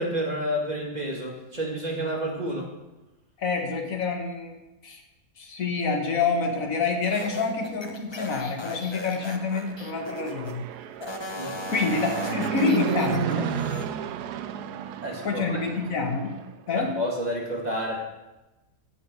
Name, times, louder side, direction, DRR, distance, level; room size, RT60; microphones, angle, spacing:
voice 1, 0.0-2.7 11.4-11.6 15.0-15.6 16.7-18.0, equal, 25° right, -1 dB, 2.0 m, -30 dB
voice 2, 3.4-4.5 4.8-5.0 5.4-10.6 11.7-13.6 15.2-16.3 16.7-17.0, left 4 dB, 60° left, 2 dB, 1.9 m, -27 dB
sound 1, 7.1-10.6 11.0-13.9, left 2 dB, 25° left, 0.6 m, -37 dB
Fixed-wing aircraft airplane, 9.1-16.5, right 9 dB, 85° right, 1.2 m, -33 dB
15.0 x 6.5 x 4.7 m, 1.0 s
omnidirectional pair, 1.7 m